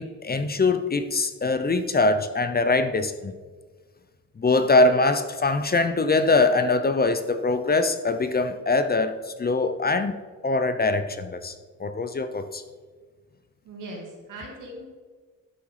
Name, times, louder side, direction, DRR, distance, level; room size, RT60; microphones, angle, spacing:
voice 1, 0.0-3.3 4.4-11.5 11.8-12.6, left 3 dB, 30° left, 0.8 m, -23 dB
voice 2, 13.6-14.9, right 1 dB, 80° right, 2.9 m, -39 dB
11.5 x 7.1 x 4.9 m
cardioid pair, 75°, 31 cm